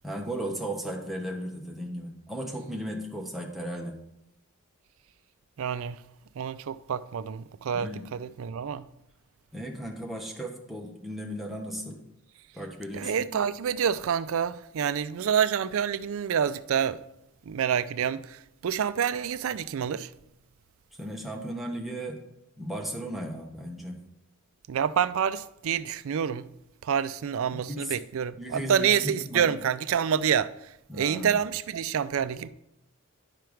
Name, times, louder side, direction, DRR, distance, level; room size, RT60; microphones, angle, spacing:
voice 1, 0.0-3.9 7.7-8.0 9.5-12.0 12.5-13.2 21.0-22.2 22.6-24.0 27.5-27.9 28.4-29.4 30.9-31.3, right 1 dB, ahead, 1.1 m, -36 dB
voice 2, 5.6-6.0 6.4-8.9 12.9-17.0 17.5-20.1 24.7-26.5 26.8-32.5, right 8 dB, 65° right, 0.4 m, -28 dB
10.5 x 4.5 x 4.9 m
head